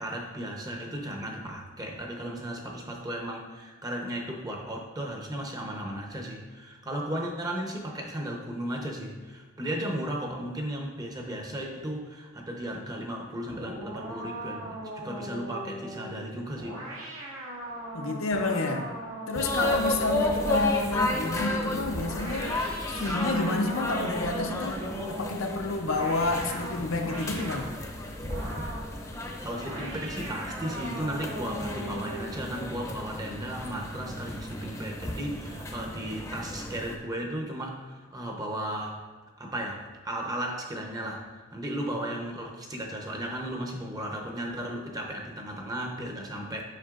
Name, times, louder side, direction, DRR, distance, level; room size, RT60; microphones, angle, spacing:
voice 1, 0.0-16.8 29.4-39.0 39.4-46.6, right 1 dB, 20° right, 0.7 m, -35 dB
sound 1, 13.5-21.3 21.9-24.4 24.8-27.7 28.3-28.9 29.6-32.4, right 1 dB, 85° right, 1.6 m, -39 dB
voice 2, 17.9-18.9 19.3-24.8 25.1-27.7, left 3 dB, 75° left, 0.6 m, -29 dB
sound 2, 19.3-37.0, left 1 dB, 15° left, 0.7 m, -33 dB
7.6 x 5.5 x 2.4 m
head